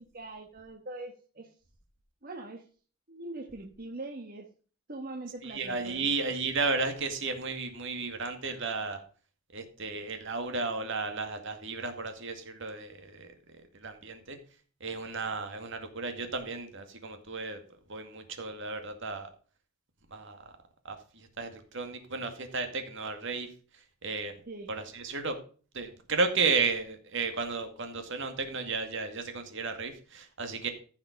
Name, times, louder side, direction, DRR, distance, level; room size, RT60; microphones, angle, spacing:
voice 1, 0.0-1.5 2.2-2.6 3.1-4.5 4.9-6.1 24.5-24.7, right 2 dB, 45° right, 2 dB, 1.4 m, -42 dB
voice 2, 5.4-9.0 9.5-13.3 13.7-14.4 14.8-17.6 17.9-19.3 20.1-20.4 20.8-23.5 24.0-24.3 24.7-25.3 25.7-30.7, right 4 dB, 60° right, 7 dB, 2.2 m, -33 dB
15.0 x 5.8 x 5.2 m, 0.40 s
head